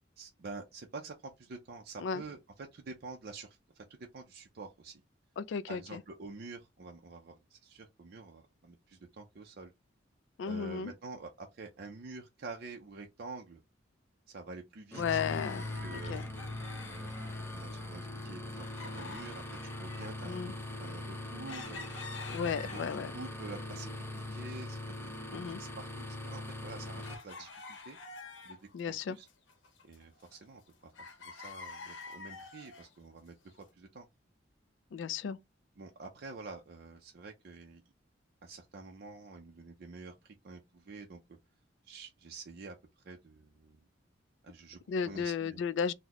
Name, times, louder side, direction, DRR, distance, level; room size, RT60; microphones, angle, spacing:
voice 1, 0.2-3.8 4.1-5.0 5.7-9.7 10.4-13.6 14.3-15.2 15.8-16.2 16.9-17.2 17.5-21.8 22.4-22.8 23.1-25.1 25.4-28.0 28.4-29.3 29.8-30.9 31.2-33.3 33.7-34.1 35.8-37.8 38.4-41.2 41.8-43.8 44.4-44.8 45.1-45.6, right 3 dB, 55° right, 0.5 m, -48 dB
voice 2, 5.4-6.0 10.4-10.9 15.0-15.7 15.9-16.2 20.2-20.5 22.3-23.1 25.3-25.6 28.7-29.2 34.9-35.4 44.9-45.9, left 6 dB, 70° left, 0.3 m, -34 dB
sound 1, 14.9-27.2, left 1 dB, 15° left, 0.7 m, -41 dB
sound 2, 15.1-17.9 18.2-23.3 23.7-24.6 24.9-25.0 25.6-28.8 29.1-30.7 30.9-32.9 33.5-33.6, left 4 dB, 85° left, 0.8 m, -48 dB
3.9 x 2.1 x 2.9 m
head